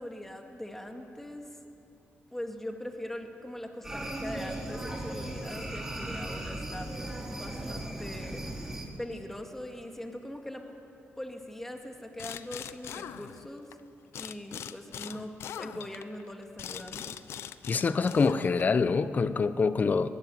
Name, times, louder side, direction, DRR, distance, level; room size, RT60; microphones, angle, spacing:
voice 1, 0.0-1.6 2.3-8.5 9.0-10.6 11.2-13.7 14.1-17.2, left 1 dB, 5° left, 3 dB, 2.2 m, -41 dB
sound 1, 3.8-8.8, right 1 dB, 10° right, 3.7 m, -37 dB
Air Impact Wrench, 12.2-13.8 14.1-18.8, left 9 dB, 85° left, 0.7 m, -42 dB
voice 2, 17.7-20.1, left 4 dB, 40° left, 13 dB, 0.9 m, -25 dB
22.0 x 19.0 x 7.8 m, 3.0 s
cardioid pair, 105°, 4 cm